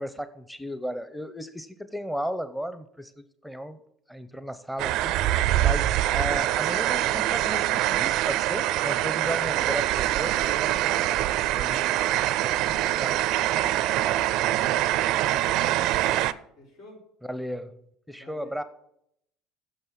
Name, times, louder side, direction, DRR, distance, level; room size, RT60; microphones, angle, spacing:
voice 1, 0.0-3.1 3.4-3.8 4.1-5.1 5.6-11.2 11.5-11.9 12.6-12.7 13.0-13.1 17.3-17.7 18.1-18.6, equal, 5° left, 12 dB, 0.8 m, -34 dB
sound 1, 4.8-16.3, right 14 dB, 65° right, 0.4 m, -24 dB
voice 2, 12.5-16.0 16.6-17.0 18.1-18.7, left 1 dB, 75° left, -3 dB, 5.0 m, -50 dB
9.7 x 6.7 x 7.4 m, 0.75 s
hypercardioid pair, 75°, 0 cm